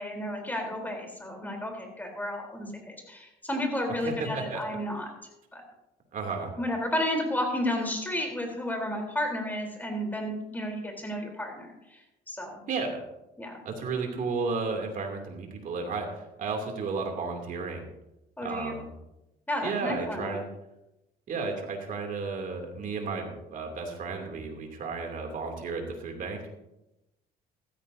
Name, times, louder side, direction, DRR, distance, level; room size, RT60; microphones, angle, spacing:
voice 1, 0.0-5.1 5.5-5.6 6.6-12.0 12.3-12.6 13.4-13.5 18.4-18.7 19.5-20.4, left 1 dB, 10° left, 1 dB, 3.7 m, -32 dB
voice 2, 4.0-4.6 6.1-6.5 12.7-13.0 13.6-17.8 18.4-18.9 19.6-20.4 21.3-26.4, right 4 dB, 55° right, 3 dB, 2.9 m, -33 dB
15.0 x 14.0 x 2.8 m, 0.92 s
cardioid pair, 110°, 17 cm